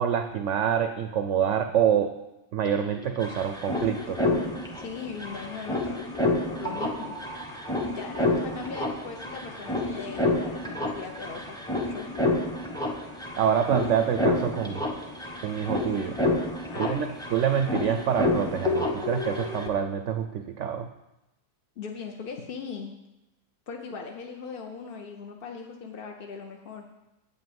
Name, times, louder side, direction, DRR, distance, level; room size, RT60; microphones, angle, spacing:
voice 1, 0.0-2.1 2.5-4.2 13.4-14.9 15.4-16.2 16.8-20.9, right 8 dB, 65° right, 7 dB, 0.7 m, -26 dB
sound 1, 2.6-2.7 2.9-19.7, left 2 dB, 5° left, 0.7 m, -29 dB
voice 2, 4.3-6.0 6.5-7.2 7.8-12.1 16.7-17.2 21.8-22.9 23.7-26.8, left 5 dB, 50° left, 2 dB, 0.7 m, -39 dB
8.1 x 5.5 x 7.7 m, 0.95 s
omnidirectional pair, 1.7 m